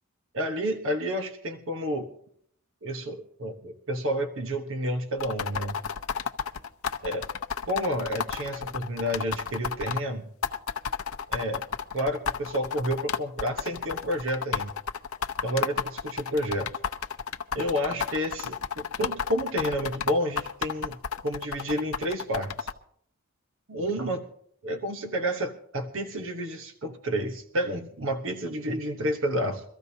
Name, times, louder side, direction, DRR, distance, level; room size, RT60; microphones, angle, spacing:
voice 1, 0.3-2.1 2.8-5.8 7.0-7.3 7.7-10.3 11.3-11.6 11.9-14.7 15.4-16.7 17.5-22.7 23.7-24.3 24.6-29.6, equal, 65° right, 6 dB, 1.1 m, -30 dB
sound 1, 5.2-10.0 10.4-22.7, left 7 dB, 75° left, 0.7 m, -32 dB
23.5 x 14.0 x 2.8 m, 0.67 s
head